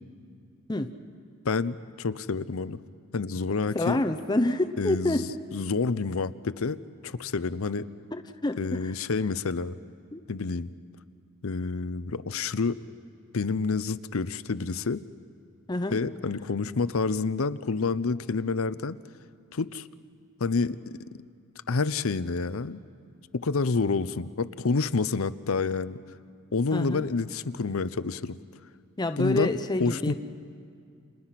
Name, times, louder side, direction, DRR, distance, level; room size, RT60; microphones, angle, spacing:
voice 1, 1.4-2.8 3.1-4.0 4.8-6.8 7.0-7.9 8.6-9.7 10.3-10.7 11.4-12.8 13.3-15.0 15.9-19.0 19.5-19.9 20.4-20.9 21.7-22.8 23.3-26.0 26.5-28.4 29.2-29.5 29.8-30.1, left 4 dB, 70° left, 15 dB, 0.7 m, -28 dB
voice 2, 3.7-5.2 8.1-8.9 10.1-10.2 15.7-16.0 26.7-27.1 29.0-30.1, left 2 dB, 20° left, 7 dB, 0.7 m, -27 dB
30.0 x 28.5 x 5.9 m, 2.3 s
head